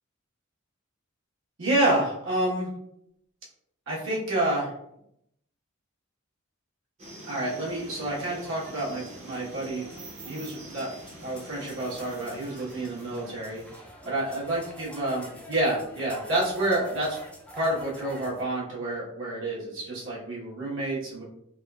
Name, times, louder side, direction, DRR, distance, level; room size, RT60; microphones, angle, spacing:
voice 1, 1.6-2.7 3.9-4.7 7.3-9.9 10.2-10.9 11.2-13.6 14.0-17.2 17.5-21.2, right 1 dB, 70° right, -5 dB, 1.2 m, -29 dB
sound 1, 7.0-13.8, right 1 dB, 30° right, 0.6 m, -45 dB
sound 2, 7.6-18.4, equal, 5° left, 0.4 m, -48 dB
3.5 x 2.4 x 2.3 m, 0.76 s
head